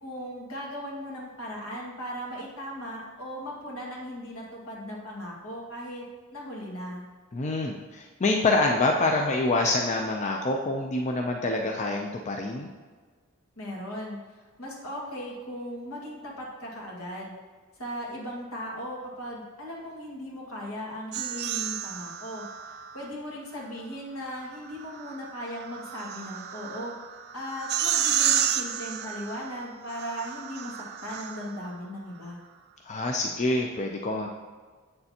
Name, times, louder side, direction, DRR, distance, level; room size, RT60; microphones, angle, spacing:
voice 1, 0.0-6.0 6.3-7.0 13.6-14.2 14.6-17.3 17.8-22.4 22.9-26.9 27.3-32.4, equal, 80° left, -3 dB, 1.9 m, -37 dB
voice 2, 7.3-12.7 32.8-34.3, left 2 dB, 35° left, 1 dB, 0.5 m, -26 dB
sound 1, 21.1-23.1 24.5-31.7, right 9 dB, 50° right, 0.5 m, -31 dB
7.8 x 6.7 x 2.9 m, 1.5 s
head